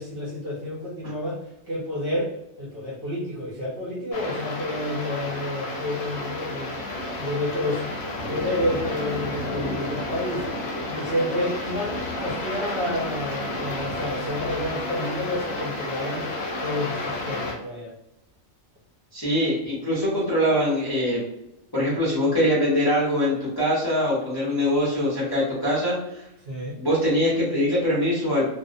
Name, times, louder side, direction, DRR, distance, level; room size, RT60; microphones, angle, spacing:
voice 1, 0.0-1.4 1.6-2.3 2.6-6.8 7.1-7.8 8.3-10.4 10.8-16.3 16.6-17.9 26.5-26.8, left 1 dB, 60° right, -6 dB, 0.7 m, -29 dB
sound 1, 4.1-17.5, left 2 dB, 60° left, 0.8 m, -31 dB
voice 2, 19.1-21.2 21.7-26.2 26.8-28.5, equal, 25° left, -7 dB, 0.5 m, -23 dB
2.4 x 2.0 x 2.5 m, 0.84 s
omnidirectional pair, 1.4 m